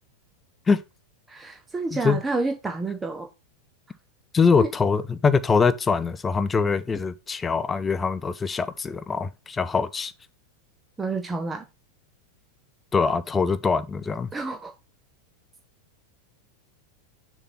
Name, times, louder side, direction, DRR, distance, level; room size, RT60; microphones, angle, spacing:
voice 1, 1.3-3.3 4.6-4.7 11.0-11.6 14.3-14.7, right 3 dB, 15° right, 0.8 m, -29 dB
voice 2, 4.3-10.1 12.9-14.3, left 5 dB, 15° left, 0.5 m, -23 dB
6.7 x 3.6 x 5.6 m
figure-of-eight pair, 90°, 0 cm